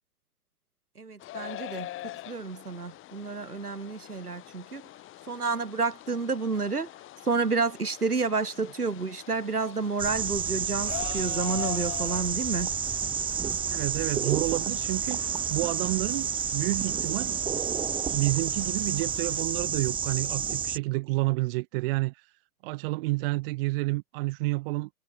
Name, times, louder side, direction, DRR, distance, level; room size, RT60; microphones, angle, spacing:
voice 1, 1.0-1.9 2.3-4.9 5.3-6.9 7.3-12.7, right 4 dB, 85° right, 6.4 m, -30 dB
sound 1, 1.2-19.4, left 15 dB, 25° left, 4.2 m, -44 dB
sound 2, 10.0-20.8, right 7 dB, 10° right, 1.0 m, -30 dB
voice 2, 13.7-17.4 18.1-22.2 22.6-24.9, right 23 dB, 40° right, 1.5 m, -29 dB
figure-of-eight pair, 115°, 44 cm